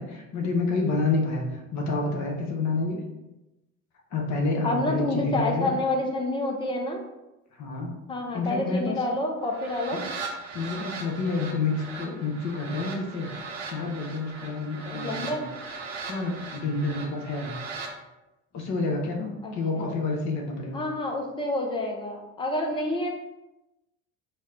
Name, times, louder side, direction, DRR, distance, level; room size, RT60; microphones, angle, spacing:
voice 1, 0.0-3.0 4.1-5.7 7.5-7.9 8.3-9.0 9.9-10.0 10.5-15.5 15.9-17.6 18.5-20.8, left 3 dB, 40° left, 1 dB, 0.8 m, -29 dB
voice 2, 4.6-7.0 8.1-10.0 14.9-15.4 19.4-19.9 20.7-23.1, left 2 dB, 15° left, 2 dB, 0.4 m, -28 dB
sound 1, 9.4-17.9, right 4 dB, 65° right, 0.8 m, -39 dB
4.0 x 2.0 x 3.7 m, 0.99 s
figure-of-eight pair, 60°, 43 cm